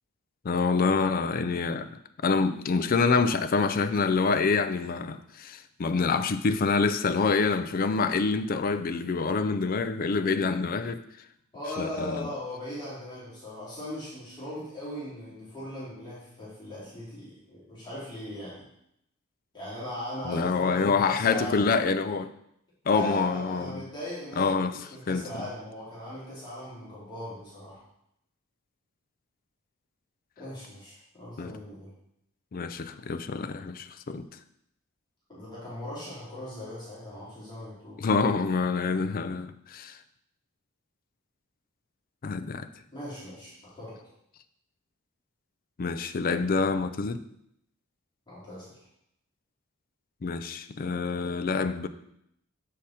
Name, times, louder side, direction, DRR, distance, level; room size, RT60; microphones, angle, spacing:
voice 1, 0.4-1.9 2.2-11.0 11.8-12.3 20.3-22.3 22.9-23.8 24.4-25.2 31.4-31.5 32.5-34.3 38.0-40.0 42.2-42.7 45.8-47.2 50.2-51.9, left 4 dB, 40° left, 0.4 m, -26 dB
voice 2, 11.5-18.7 19.5-21.7 22.9-27.8 30.4-31.9 35.3-38.1 42.9-44.0 48.3-48.7, left 1 dB, 20° left, 2.5 m, -39 dB
7.5 x 5.1 x 4.2 m
head